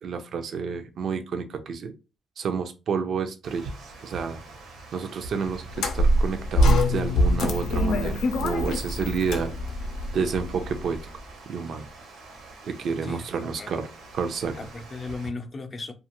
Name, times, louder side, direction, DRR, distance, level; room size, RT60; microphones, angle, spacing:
voice 1, 0.0-1.9 2.4-4.4 4.9-9.5 10.1-11.0 11.5-11.9 12.6-13.9 14.1-14.7, right 5 dB, 60° right, 0.4 m, -30 dB
Water, 3.4-15.3, right 3 dB, 85° right, 0.8 m, -45 dB
sound 1, 5.7-11.0, left 1 dB, 80° left, 0.6 m, -24 dB
voice 2, 13.0-13.7 14.6-15.9, left 3 dB, 35° left, 0.5 m, -36 dB
2.5 x 2.4 x 2.9 m
cardioid pair, 90°, 0 cm